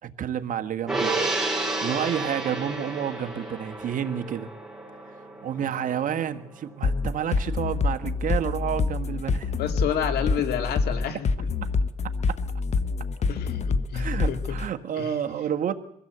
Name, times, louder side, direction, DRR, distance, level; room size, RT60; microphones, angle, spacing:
voice 1, 0.0-1.1 1.8-4.5 5.4-9.6 11.6-11.7 12.3-12.4 13.9-15.7, right 9 dB, 50° right, 8 dB, 1.5 m, -30 dB
Gong, 0.9-7.5 7.8-8.0, right 2 dB, 5° right, 6.5 m, -31 dB
sound 1, 6.8-14.7, left 4 dB, 40° left, 1.0 m, -26 dB
voice 2, 9.6-11.5 13.3-14.6 15.0-15.1, left 8 dB, 70° left, 8 dB, 2.3 m, -30 dB
23.5 x 15.5 x 8.0 m, 0.77 s
cardioid pair, 110°, 17 cm